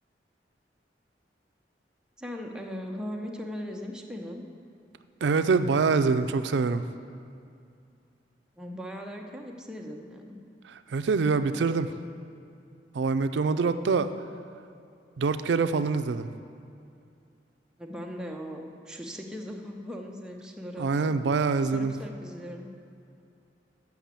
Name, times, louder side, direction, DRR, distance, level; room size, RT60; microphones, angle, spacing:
voice 1, 2.2-4.5 8.6-10.4 17.8-21.1 21.7-22.7, equal, 5° right, 1 dB, 0.7 m, -39 dB
voice 2, 5.2-6.8 10.7-11.9 12.9-14.1 15.2-16.3 20.8-21.9, right 4 dB, 80° right, 11 dB, 0.4 m, -25 dB
7.1 x 5.9 x 7.4 m, 2.4 s
head